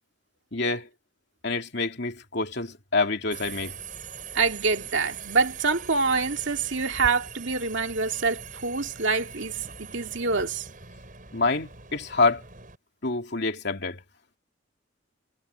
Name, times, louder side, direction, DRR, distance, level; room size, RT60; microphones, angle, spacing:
voice 1, 0.5-0.9 1.4-3.7 11.3-12.4 13.0-14.0, left 3 dB, 60° left, 2.8 m, -27 dB
Subway metro underground, 3.3-12.8, right 6 dB, 45° right, 6.0 m, -42 dB
voice 2, 4.3-10.7, right 4 dB, 70° right, 2.5 m, -26 dB
head